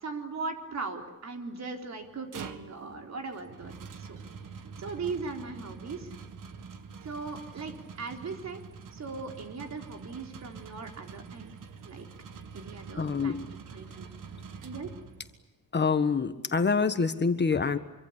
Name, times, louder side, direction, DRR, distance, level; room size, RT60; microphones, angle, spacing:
voice 1, 0.0-4.2 4.8-6.1 7.0-8.6 8.9-11.5 11.8-12.1 12.5-13.4 13.7-14.1 14.6-14.9, right 4 dB, 55° right, 4 dB, 4.1 m, -39 dB
sound 1, 2.0-15.5, right 5 dB, 80° right, 2.0 m, -45 dB
voice 2, 13.0-13.4 15.7-17.8, left 5 dB, 35° left, 9 dB, 1.5 m, -26 dB
26.0 x 24.5 x 8.3 m, 1.0 s
wide cardioid pair, 150°, 32 cm